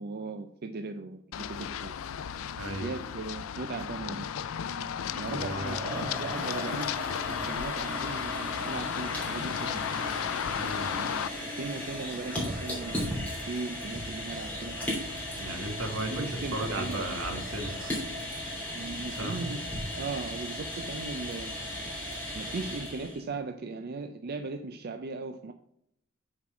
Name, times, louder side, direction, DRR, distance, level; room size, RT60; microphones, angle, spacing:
voice 1, 0.0-1.9 2.7-4.3 5.2-9.8 10.9-11.3 11.6-14.8 16.0-17.5 18.7-25.5, right 3 dB, 50° right, 7 dB, 0.5 m, -38 dB
Run, 1.3-11.3, left 8 dB, 90° left, 0.4 m, -34 dB
voice 2, 2.6-2.9 5.3-5.8 10.6-11.0 15.4-16.3 16.5-18.0 19.2-19.4, right 2 dB, 80° right, 5 dB, 1.4 m, -35 dB
sound 1, 5.0-23.2, left 1 dB, 5° left, 3.0 m, -36 dB
7.0 x 4.6 x 6.1 m, 0.73 s
head